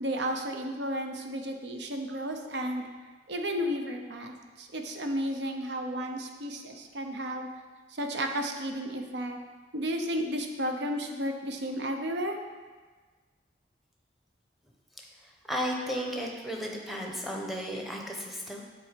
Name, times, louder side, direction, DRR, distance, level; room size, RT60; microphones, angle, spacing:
voice 1, 0.0-2.8 3.3-7.5 7.9-9.4 9.7-12.4, equal, 70° right, 4 dB, 0.8 m, -33 dB
voice 2, 15.2-18.6, equal, ahead, 0 dB, 0.8 m, -34 dB
7.6 x 4.1 x 5.1 m, 1.4 s
head